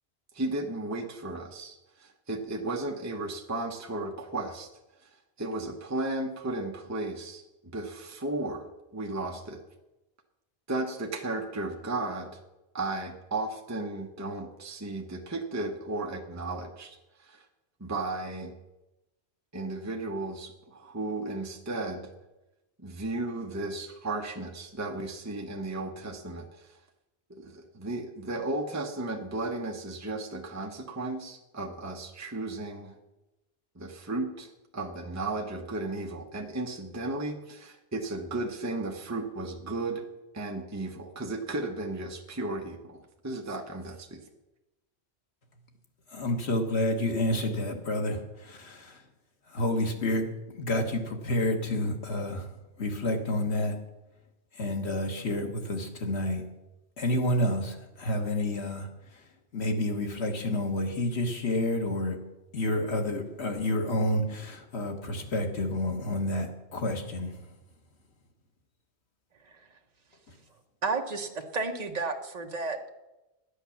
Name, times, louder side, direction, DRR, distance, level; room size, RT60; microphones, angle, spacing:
voice 1, 0.3-4.7 5.0-5.1 5.4-7.4 7.7-9.6 10.7-12.3 12.7-17.4 17.8-18.5 19.5-22.1 22.8-26.7 27.3-33.0 33.8-40.0 40.3-44.2, right 2 dB, 15° right, 3 dB, 0.9 m, -34 dB
voice 2, 46.1-49.0 49.5-50.3 50.5-52.5 52.8-53.8 54.6-56.4 57.0-59.2 59.5-62.2 62.5-67.3, left 1 dB, 75° left, 3 dB, 1.8 m, -29 dB
voice 3, 70.8-72.9, right 4 dB, 40° right, 4 dB, 1.2 m, -32 dB
11.5 x 8.4 x 7.1 m, 1.0 s
omnidirectional pair, 1.1 m